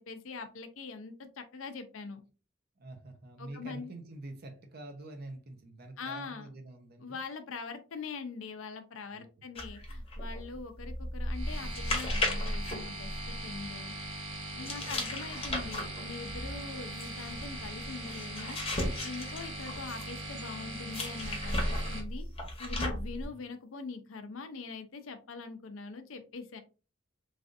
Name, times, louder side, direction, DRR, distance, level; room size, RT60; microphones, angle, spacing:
voice 1, 0.0-2.2 3.4-3.9 6.0-6.5 7.0-13.9 14.5-18.6 19.0-22.3 22.6-26.6, left 4 dB, 75° left, 0.5 m, -43 dB
voice 2, 2.8-7.2 9.1-9.2 14.5-15.1 23.2-23.4, right 2 dB, 50° right, 0.7 m, -47 dB
sound 1, 9.6-13.7 14.7-20.2 20.9-23.3, left 1 dB, 30° left, 0.9 m, -35 dB
sound 2, 11.3-22.0, right 1 dB, 90° right, 1.1 m, -41 dB
3.3 x 2.4 x 2.5 m
head